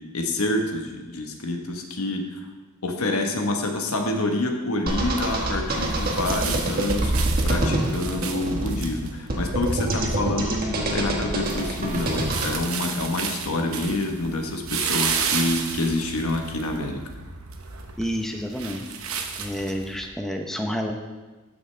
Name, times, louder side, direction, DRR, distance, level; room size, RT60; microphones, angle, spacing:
voice 1, 0.0-2.4 2.8-7.1 7.4-17.0, left 2 dB, 80° left, 3 dB, 1.2 m, -27 dB
sound 1, 4.9-12.5, right 1 dB, 45° right, 1.3 m, -26 dB
sound 2, 4.9-20.1, right 6 dB, 70° right, 0.9 m, -33 dB
voice 2, 18.0-18.8 19.4-20.9, equal, ahead, 2 dB, 0.8 m, -29 dB
14.0 x 6.4 x 3.4 m, 1.2 s
head